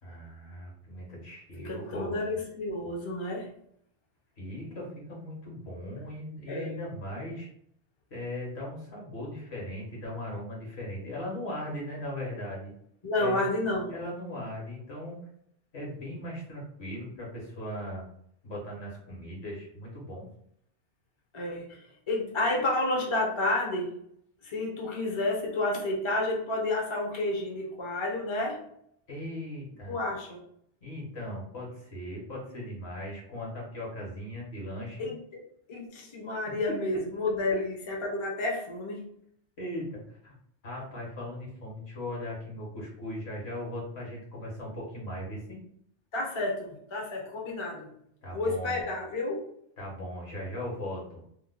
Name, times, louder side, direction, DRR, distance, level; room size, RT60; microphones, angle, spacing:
voice 1, 0.0-2.2 4.4-7.5 8.1-12.7 13.2-13.5 13.9-15.2 15.7-18.1 18.4-20.3 29.1-30.0 30.8-35.1 39.6-40.3 40.6-45.6 48.2-48.8 49.8-51.2, left 1 dB, 65° left, -3 dB, 1.5 m, -38 dB
voice 2, 1.6-3.5 6.5-6.7 13.0-13.9 21.3-24.0 24.4-28.6 29.9-30.4 35.0-35.2 35.7-39.2 46.1-47.9 48.3-49.5, left 2 dB, 30° left, -1 dB, 0.6 m, -30 dB
3.0 x 2.2 x 3.6 m, 0.69 s
omnidirectional pair, 1.2 m